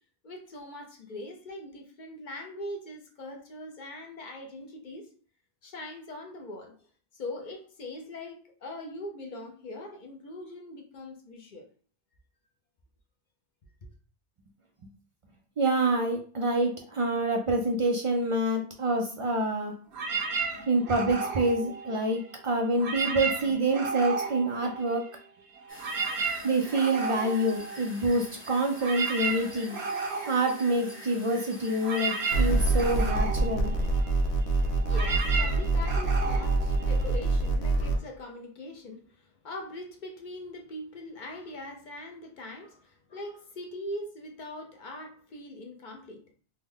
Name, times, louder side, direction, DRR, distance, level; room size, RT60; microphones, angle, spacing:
voice 1, 0.2-5.1 5.6-6.8 7.1-11.7 34.7-46.2, left 1 dB, 55° left, 0.7 m, -41 dB
voice 2, 15.6-19.7 20.7-25.0 26.4-29.8 30.3-33.7, right 2 dB, 55° right, 0.3 m, -27 dB
sound 1, 19.9-22.3 22.7-25.3 25.5-37.5, right 4 dB, 75° right, 0.9 m, -34 dB
sound 2, 25.7-33.1, equal, 15° left, 0.7 m, -47 dB
sound 3, 32.3-38.0, right 2 dB, 85° left, 0.9 m, -26 dB
3.3 x 2.1 x 3.5 m
omnidirectional pair, 1.1 m